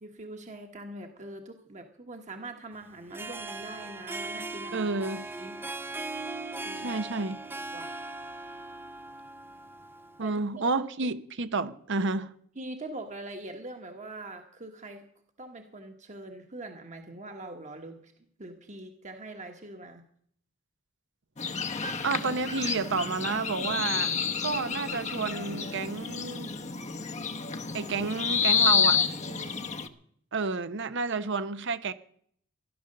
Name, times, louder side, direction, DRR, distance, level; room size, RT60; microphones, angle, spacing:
voice 1, 0.0-4.9 5.4-5.6 6.6-7.0 7.7-7.9 10.2-10.8 12.5-15.0 15.4-18.1 18.4-20.0 23.9-24.1 29.3-29.7, right 2 dB, 35° right, 1.4 m, -43 dB
Harp, 3.0-10.3, right 2 dB, 10° right, 0.6 m, -39 dB
voice 2, 4.7-5.2 6.8-7.4 10.2-12.3 22.0-24.1 24.4-26.5 27.7-29.0 30.3-31.9, right 4 dB, 60° right, 0.9 m, -30 dB
sound 1, 21.4-29.9, left 6 dB, 35° left, 1.0 m, -29 dB
15.5 x 11.5 x 6.6 m
head